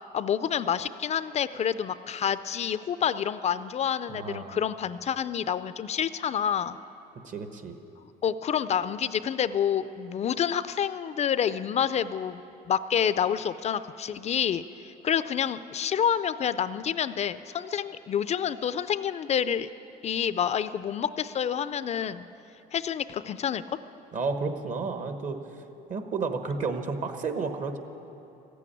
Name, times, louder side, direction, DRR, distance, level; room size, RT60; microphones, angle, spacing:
voice 1, 0.1-6.8 8.2-12.4 12.7-19.7 20.0-22.3 22.7-23.8, left 8 dB, 40° left, 14 dB, 0.4 m, -28 dB
voice 2, 4.1-4.6 7.2-7.7 24.1-25.4 25.9-27.8, right 4 dB, 50° right, 7 dB, 1.2 m, -31 dB
14.5 x 8.5 x 9.9 m, 3.0 s
cardioid pair, 110°, 17 cm